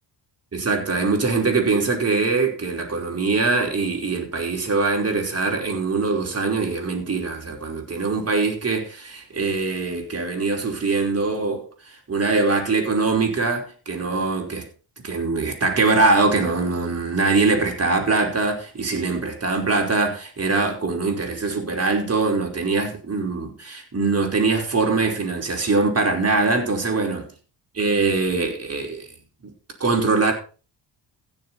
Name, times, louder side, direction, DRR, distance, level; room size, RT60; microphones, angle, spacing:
voice 1, 0.5-11.6 12.1-14.6 15.0-27.2 27.7-29.1 29.8-30.3, right 3 dB, 30° right, 5.1 m, -22 dB
16.0 x 7.3 x 4.4 m
cardioid pair, 85°, 46 cm